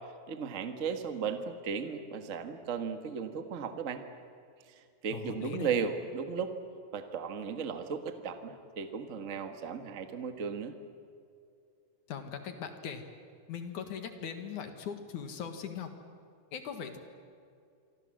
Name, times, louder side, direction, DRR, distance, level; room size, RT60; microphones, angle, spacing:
voice 1, 0.3-4.0 5.0-6.6 6.9-10.7, right 6 dB, 45° right, 7 dB, 0.9 m, -35 dB
voice 2, 5.1-5.7 12.1-13.0 13.5-15.9 16.5-17.0, left 7 dB, 60° left, 7 dB, 3.0 m, -40 dB
27.0 x 24.0 x 7.8 m, 2.3 s
omnidirectional pair, 4.1 m